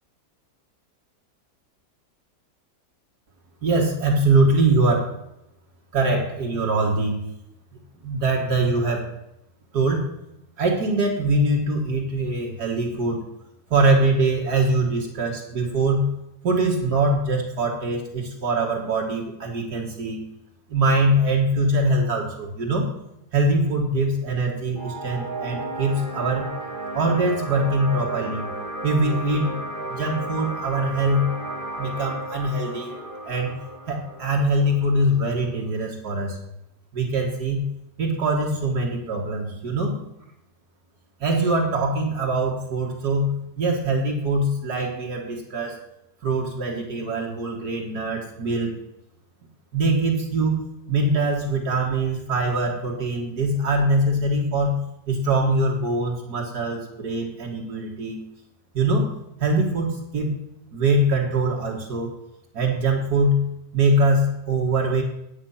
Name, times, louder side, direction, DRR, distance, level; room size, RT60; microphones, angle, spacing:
voice 1, 3.6-5.1 5.9-7.2 8.0-9.0 9.7-10.1 10.6-13.2 13.7-16.1 16.4-20.2 20.7-22.9 23.3-26.5 26.9-28.4 28.8-29.6 29.9-31.3 31.8-33.0 33.3-33.6 33.9-36.4 36.9-37.7 38.0-39.9 41.2-45.8 46.2-48.7 49.7-50.6 50.9-54.8 55.1-58.2 58.7-59.1 59.4-60.4 60.7-62.1 62.5-65.0, right 2 dB, 65° right, -1 dB, 2.3 m, -23 dB
sound 1, 24.7-35.8, right 2 dB, 30° right, 2.2 m, -34 dB
10.0 x 8.1 x 5.7 m, 0.84 s
omnidirectional pair, 1.8 m